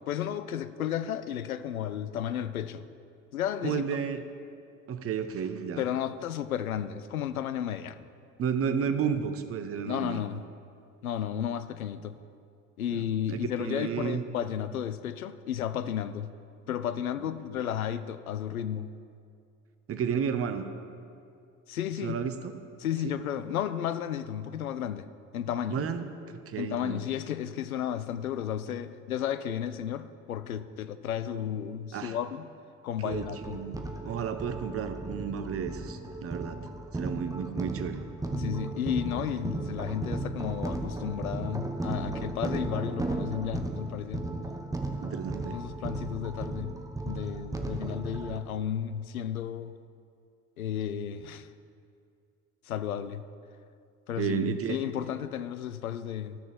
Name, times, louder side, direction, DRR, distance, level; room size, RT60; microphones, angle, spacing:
voice 1, 0.1-2.9 3.3-3.9 5.8-8.1 9.8-10.4 11.0-12.2 12.8-16.3 16.7-18.9 21.7-22.2 22.8-25.1 25.3-25.9 26.6-32.5 32.8-33.6 38.3-44.3 45.5-46.8 47.0-49.8 50.6-51.5 52.6-53.2 54.1-56.4, left 10 dB, 85° left, 12 dB, 0.5 m, -33 dB
voice 2, 3.6-4.2 4.9-5.9 8.4-10.2 12.9-14.2 19.9-20.7 22.0-22.5 23.0-23.2 25.7-27.0 31.9-32.2 33.0-38.0 45.0-45.6 54.2-54.8, right 7 dB, 35° right, 9 dB, 0.8 m, -32 dB
sound 1, 33.1-48.4, right 2 dB, 10° right, 1.0 m, -35 dB
13.5 x 6.4 x 5.9 m, 2.4 s
figure-of-eight pair, 55°, 42 cm